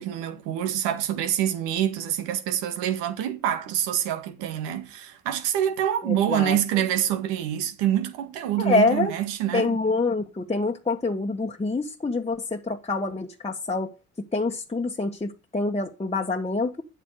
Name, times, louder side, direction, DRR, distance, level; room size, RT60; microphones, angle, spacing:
voice 1, 0.0-9.7, right 11 dB, 75° right, 1.9 m, -26 dB
voice 2, 6.0-6.6 8.6-9.1 9.5-13.9 14.3-16.8, left 3 dB, 15° left, 1.4 m, -26 dB
9.9 x 8.1 x 6.5 m
hypercardioid pair, 50°, 43 cm